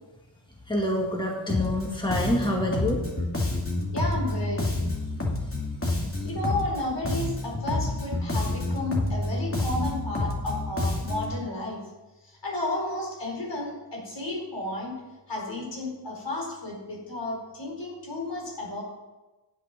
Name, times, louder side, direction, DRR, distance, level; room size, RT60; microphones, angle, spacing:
voice 1, 0.7-3.0 6.0-6.2, left 1 dB, 10° left, -1 dB, 2.0 m, -27 dB
Bass guitar, 1.5-1.8 2.1-6.8 7.0-11.4, left 2 dB, 30° left, 2.5 m, -28 dB
voice 2, 3.9-4.6 6.2-11.8 12.2-15.0 15.3-18.8, left 2 dB, 65° left, -2 dB, 4.2 m, -32 dB
10.5 x 8.1 x 5.9 m, 1.1 s
wide cardioid pair, 65°, 45 cm